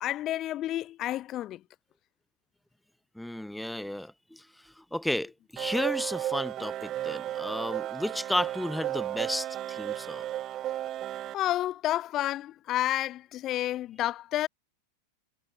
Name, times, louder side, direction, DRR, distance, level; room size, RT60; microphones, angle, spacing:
voice 1, 0.0-1.6 11.3-14.5, left 13 dB, 35° left, 1.0 m, -30 dB
voice 2, 3.2-4.4 4.9-10.3, left 1 dB, ahead, 1.0 m, -33 dB
sound 1, 5.6-11.3, right 12 dB, 30° right, 0.9 m, -34 dB
figure-of-eight pair, 90°, 0 cm